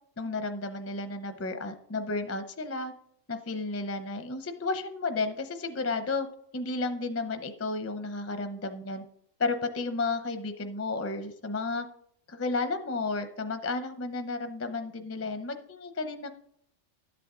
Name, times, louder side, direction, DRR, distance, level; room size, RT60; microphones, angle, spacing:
voice 1, 0.2-2.9 3.3-6.3 6.5-9.0 9.4-11.9 12.3-16.3, left 3 dB, 20° left, 8 dB, 0.4 m, -32 dB
12.5 x 8.4 x 3.7 m, 0.69 s
omnidirectional pair, 1.3 m